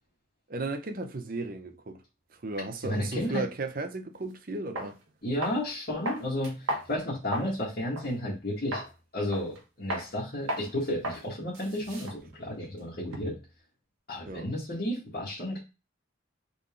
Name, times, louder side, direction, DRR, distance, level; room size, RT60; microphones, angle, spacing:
voice 1, 0.5-2.0 2.4-5.0 14.3-14.5, right 2 dB, 45° right, 0.6 m, -35 dB
voice 2, 2.8-3.4 5.2-8.8 9.1-13.3 14.1-15.6, left 1 dB, 45° left, 1.7 m, -32 dB
sound 1, 4.2-4.3 4.8-4.9 5.4-5.7 6.1-7.6 8.0-8.1 8.7-8.9 9.3-9.6 9.9-10.1 10.5-10.7 11.0-11.2 11.5-13.5, equal, 85° right, 1.2 m, -35 dB
3.8 x 3.5 x 3.6 m
head